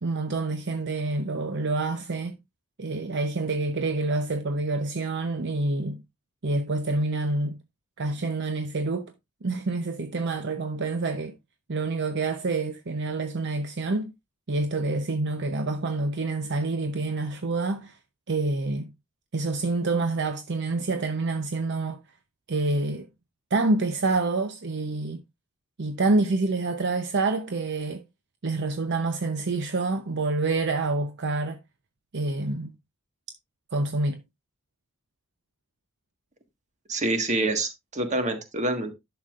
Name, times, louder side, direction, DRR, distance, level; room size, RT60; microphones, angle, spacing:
voice 1, 0.0-2.4 2.8-6.0 6.4-7.6 8.0-9.1 9.4-11.3 11.7-14.1 14.5-18.0 18.3-18.9 19.3-22.0 22.5-23.1 23.5-25.2 25.8-28.0 28.4-31.6 32.1-32.7 33.7-34.2, right 3 dB, 55° right, 0.8 m, -27 dB
voice 2, 36.9-38.9, right 2 dB, 35° right, 1.6 m, -26 dB
11.0 x 6.9 x 2.4 m
head